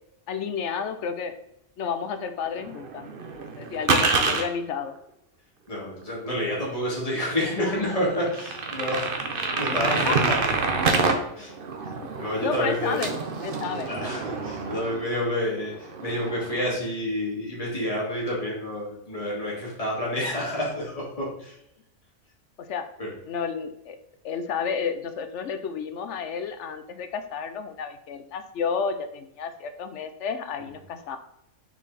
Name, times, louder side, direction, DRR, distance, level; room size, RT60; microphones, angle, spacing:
voice 1, 0.3-1.3 1.8-4.9 9.8-10.1 12.0-12.1 12.4-13.1 13.4-13.9 22.6-22.9 23.2-24.0 24.2-31.2, left 6 dB, 60° left, 9 dB, 1.0 m, -31 dB
sound 1, 2.5-4.4 6.1-6.2 6.6-6.7 7.3-7.4 7.7-7.8 8.2-11.2 11.5-15.3 15.6-16.7, right 4 dB, 45° right, 0.9 m, -27 dB
voice 2, 5.7-10.4 11.4-11.5 12.2-13.1 13.8-21.6 23.0-23.1, left 1 dB, 25° left, -5 dB, 2.4 m, -29 dB
6.0 x 4.5 x 4.1 m, 0.79 s
omnidirectional pair, 1.5 m